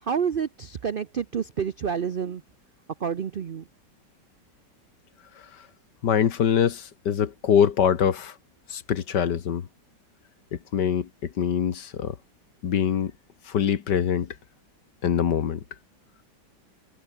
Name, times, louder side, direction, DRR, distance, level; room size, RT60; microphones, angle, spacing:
voice 1, 0.0-2.4 3.0-3.7, right 7 dB, 70° right, 0.5 m, -28 dB
voice 2, 5.4-5.7 6.0-8.4 8.7-9.7 10.5-12.2 12.6-13.1 13.4-14.4 15.0-15.6, left 8 dB, 70° left, 2.0 m, -24 dB
omnidirectional pair, 1.9 m